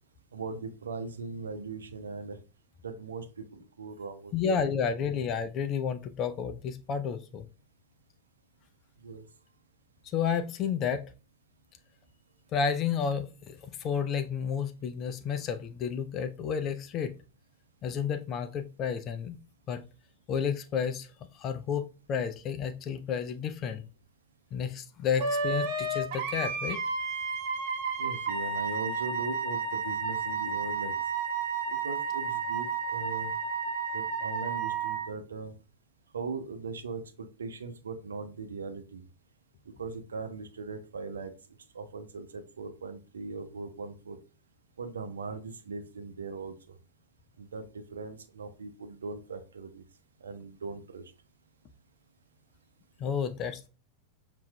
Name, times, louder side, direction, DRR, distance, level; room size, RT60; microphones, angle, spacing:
voice 1, 0.3-2.4 2.8-4.6 9.0-9.2 28.0-30.9 31.7-33.3 33.9-35.5 36.1-39.0 39.8-41.3 41.7-44.2 44.8-46.5 47.4-49.8 50.2-51.0, right 4 dB, 70° right, 7 dB, 0.7 m, -39 dB
voice 2, 4.3-7.5 10.1-11.1 12.5-17.1 17.8-19.4 19.7-19.8 20.3-21.1 21.3-23.8 24.5-26.8 53.0-53.6, left 7 dB, 35° left, 10 dB, 0.5 m, -31 dB
Wind instrument woodwind instrument, 25.2-35.1, right 4 dB, 45° right, 1.1 m, -32 dB
7.1 x 2.5 x 2.2 m, 0.32 s
figure-of-eight pair, 90°, 0 cm